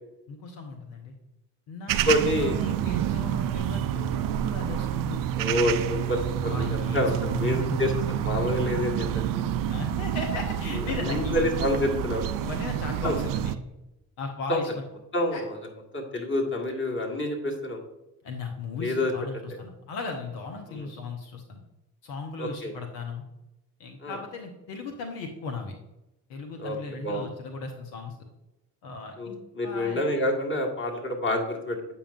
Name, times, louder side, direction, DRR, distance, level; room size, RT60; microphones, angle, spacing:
voice 1, 0.3-1.1 1.7-5.2 6.4-8.0 9.7-11.5 12.4-13.5 14.2-14.8 15.3-15.4 18.2-21.6 22.0-23.2 23.8-25.7 26.3-28.2 28.8-30.0, left 4 dB, 70° left, 3 dB, 1.0 m, -37 dB
sound 1, 1.9-13.6, right 10 dB, 50° right, 0.5 m, -28 dB
voice 2, 2.1-2.6 5.3-9.2 10.7-12.2 13.0-13.1 14.5-14.6 15.1-15.6 15.9-17.8 18.8-19.1 20.7-20.9 22.4-22.7 24.0-24.2 26.6-26.8 27.0-27.3 29.2-31.8, left 1 dB, 25° left, 1 dB, 1.8 m, -28 dB
8.4 x 5.6 x 2.5 m, 0.94 s
hypercardioid pair, 45°, 45 cm